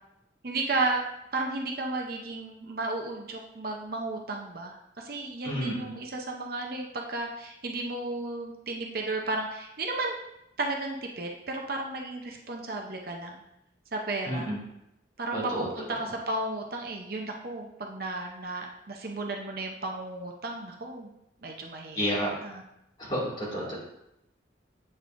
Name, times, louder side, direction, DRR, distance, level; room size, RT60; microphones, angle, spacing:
voice 1, 0.4-1.0 1.3-10.1 10.6-13.4 13.9-14.5 15.2-21.1 21.4-22.1 22.4-22.6 23.5-23.8, right 2 dB, 50° right, 1 dB, 0.7 m, -33 dB
voice 2, 5.4-5.9 14.3-14.6 15.3-15.7 22.0-22.3 23.0-23.8, equal, 25° left, -7 dB, 2.1 m, -30 dB
8.3 x 5.4 x 2.5 m, 0.84 s
head